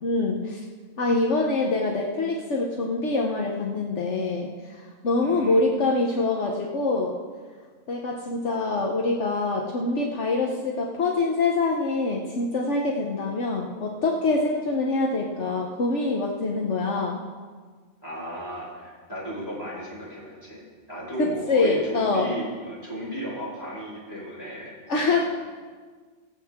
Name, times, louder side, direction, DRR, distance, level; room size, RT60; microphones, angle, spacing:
voice 1, 0.0-0.6 1.0-7.2 7.9-17.2 21.2-22.3 24.9-25.2, left 3 dB, 70° left, -1 dB, 1.3 m, -25 dB
voice 2, 5.2-5.6 18.0-24.7 25.1-25.2, right 1 dB, 20° left, -6 dB, 4.6 m, -35 dB
22.5 x 7.7 x 3.6 m, 1.5 s
omnidirectional pair, 1.3 m